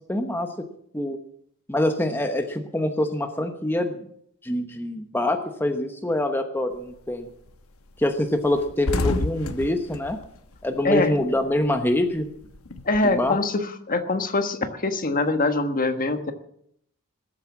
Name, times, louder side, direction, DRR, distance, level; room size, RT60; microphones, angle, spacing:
voice 1, 0.1-0.6 0.9-1.2 1.7-4.1 4.4-7.3 8.0-10.2 10.6-12.3 13.0-13.4, left 1 dB, 10° left, 5 dB, 1.0 m, -25 dB
sound 1, 6.7-7.1 7.5-7.6 7.9-8.0 8.3-11.3 11.6-13.3, left 2 dB, 70° left, 1.1 m, -30 dB
voice 2, 12.8-16.3, left 3 dB, 40° left, 8 dB, 1.3 m, -24 dB
20.0 x 8.4 x 7.3 m, 0.69 s
head